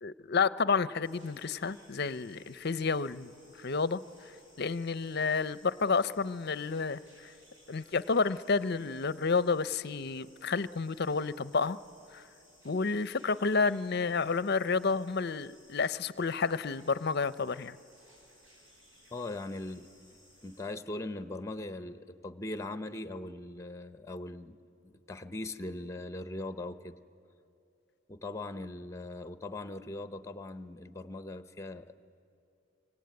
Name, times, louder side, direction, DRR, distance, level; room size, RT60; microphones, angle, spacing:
voice 1, 0.0-3.3 3.6-4.0 4.6-7.0 7.7-11.8 12.1-12.2 12.6-17.8, left 4 dB, 50° left, 16 dB, 0.6 m, -30 dB
sound 1, 1.0-20.6, equal, 75° right, 7.9 m, -61 dB
voice 2, 19.1-19.9 20.4-24.6 24.8-27.0 28.1-31.9, left 2 dB, 15° left, 11 dB, 0.8 m, -40 dB
25.5 x 24.0 x 9.5 m, 2.7 s
head